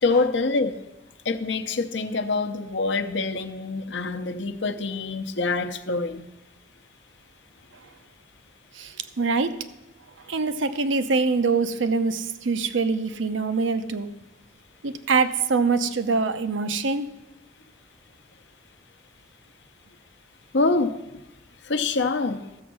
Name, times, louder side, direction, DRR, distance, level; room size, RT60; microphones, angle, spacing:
voice 1, 0.0-0.8 1.2-6.3 20.5-20.9 21.6-22.4, left 3 dB, 75° left, 8 dB, 0.8 m, -25 dB
voice 2, 8.7-9.6 10.3-14.1 14.8-17.1, right 4 dB, 85° right, 11 dB, 0.7 m, -24 dB
13.5 x 7.2 x 6.1 m, 1.0 s
head